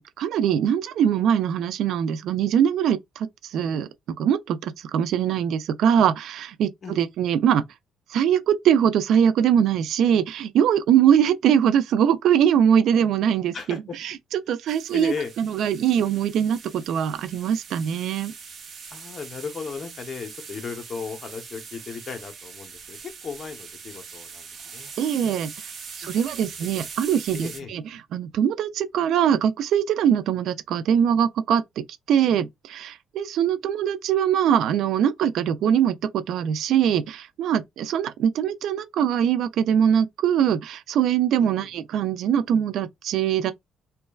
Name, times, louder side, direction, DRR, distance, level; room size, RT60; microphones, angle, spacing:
voice 1, 0.0-3.9 4.2-6.7 7.0-7.7 8.1-14.1 14.5-18.3 25.0-25.5 26.0-27.8 28.1-43.5, right 9 dB, 70° right, 0.3 m, -22 dB
voice 2, 13.5-14.0 14.9-15.3 18.9-24.9 26.0-26.1 27.3-27.7 41.4-41.7, left 5 dB, 40° left, 0.8 m, -36 dB
sound 1, 14.7-27.6, right 5 dB, 45° right, 0.8 m, -42 dB
3.0 x 2.3 x 2.3 m
cardioid pair, 115°, 0 cm